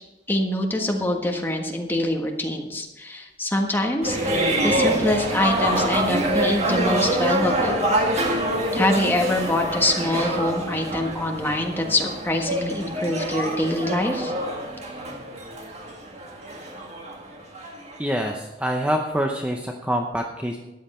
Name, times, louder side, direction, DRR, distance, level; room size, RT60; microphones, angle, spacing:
voice 1, 0.3-7.8 8.7-14.3, left 1 dB, 10° left, 2 dB, 1.4 m, -24 dB
sound 1, 4.0-18.3, right 1 dB, 40° right, 1.9 m, -26 dB
voice 2, 18.0-20.6, equal, 5° right, 2 dB, 0.7 m, -25 dB
13.5 x 9.6 x 4.3 m, 1.0 s
head